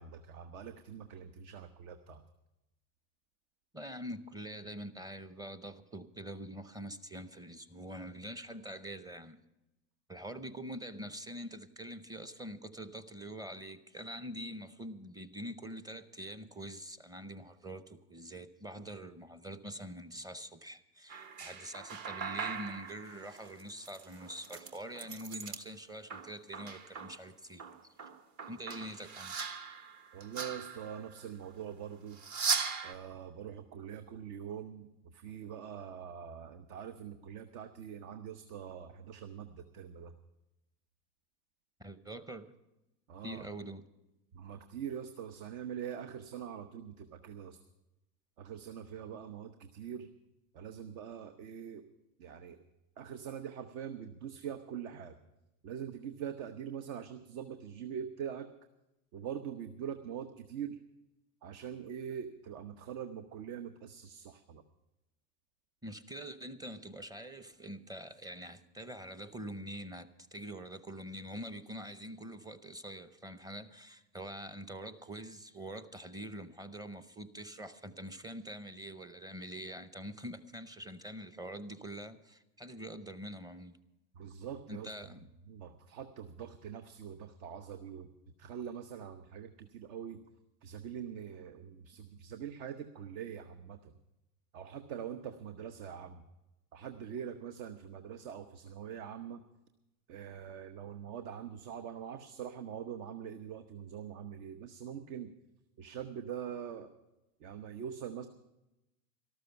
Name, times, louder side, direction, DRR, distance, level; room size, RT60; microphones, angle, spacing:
voice 1, 0.0-2.2 30.1-32.2 32.8-40.1 43.1-43.5 44.3-47.6 48.4-50.1 50.5-51.8 52.2-52.6 53.0-55.2 55.6-58.5 59.1-60.8 61.4-64.6 84.2-84.9 85.5-88.1 88.4-90.2 90.6-93.9 94.5-96.2 96.7-99.4 100.1-105.3 105.8-106.9 107.4-108.3, right 8 dB, 60° right, 8 dB, 1.0 m, -43 dB
voice 2, 3.7-9.4 10.1-27.6 28.5-29.4 41.8-42.5 43.2-43.8 65.8-83.8 84.7-85.3, right 1 dB, 10° right, 12 dB, 0.7 m, -45 dB
sound 1, 21.1-25.6 25.9-27.2 27.6-31.2 32.1-32.9, right 6 dB, 40° right, 1.3 m, -39 dB
13.0 x 13.0 x 5.8 m, 0.95 s
hypercardioid pair, 105°, 46 cm